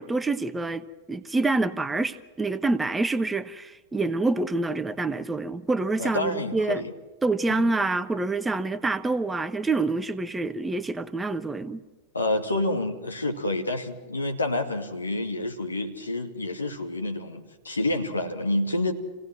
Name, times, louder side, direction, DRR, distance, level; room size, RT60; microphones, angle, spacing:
voice 1, 0.0-6.8 7.2-11.8, right 3 dB, 10° right, 1.0 m, -27 dB
voice 2, 6.0-6.9 7.5-7.7 12.1-18.9, left 2 dB, 80° left, 2.4 m, -28 dB
28.0 x 17.5 x 6.1 m
figure-of-eight pair, 90°, 0 cm